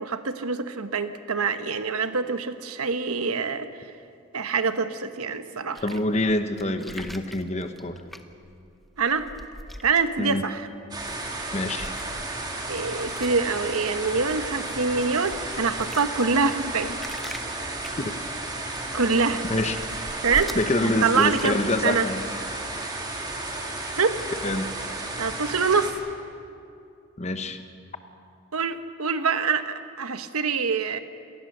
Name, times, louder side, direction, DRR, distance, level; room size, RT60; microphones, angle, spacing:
voice 1, 0.0-3.9 4.3-5.8 9.0-9.3 9.8-10.7 12.7-17.0 18.9-19.4 20.2-20.6 20.8-22.1 24.0-24.2 25.2-25.9 28.5-31.0, right 5 dB, 85° right, 10 dB, 1.1 m, -25 dB
voice 2, 5.8-8.0 10.2-10.4 11.5-11.9 18.0-18.1 19.5-19.8 20.5-22.2 24.4-24.7 27.2-27.6, left 1 dB, 30° left, 8 dB, 1.1 m, -26 dB
sound 1, 5.8-10.5 11.0-11.5 11.8-22.5, equal, ahead, 0.7 m, -43 dB
sound 2, 10.9-25.9, right 2 dB, 20° right, 2.4 m, -33 dB
27.0 x 19.0 x 6.7 m, 2.6 s
head